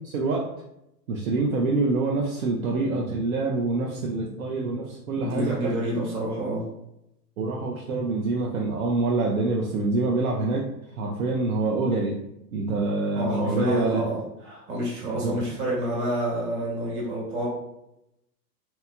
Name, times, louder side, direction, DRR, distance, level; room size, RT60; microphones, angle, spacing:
voice 1, 0.0-0.4 1.1-5.7 7.4-10.7 11.0-12.2 12.5-14.0 15.0-15.4, right 3 dB, 60° right, -1 dB, 0.5 m, -26 dB
voice 2, 5.2-6.6 13.1-17.5, right 1 dB, 20° right, -6 dB, 1.1 m, -28 dB
2.9 x 2.1 x 2.2 m, 0.84 s
figure-of-eight pair, 105°, 50 cm